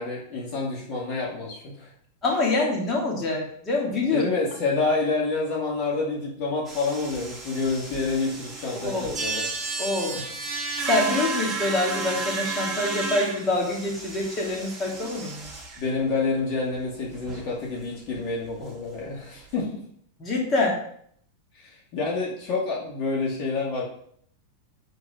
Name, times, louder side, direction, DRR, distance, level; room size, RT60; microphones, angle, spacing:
voice 1, 0.0-1.9 4.1-9.5 10.1-10.3 15.8-19.8 21.5-23.8, left 3 dB, 45° left, -3 dB, 2.4 m, -28 dB
voice 2, 2.2-4.3 8.8-9.2 9.8-10.2 10.9-15.5 20.2-20.8, left 2 dB, 25° left, -2 dB, 2.8 m, -25 dB
sound 1, 6.7-16.0 16.3-16.4 16.7-16.8 17.1-17.4 17.8-17.9 18.1-18.3 19.5-19.6, right 3 dB, 10° right, 2.5 m, -33 dB
7.9 x 5.5 x 5.1 m, 0.65 s
supercardioid pair, 135°, 0 cm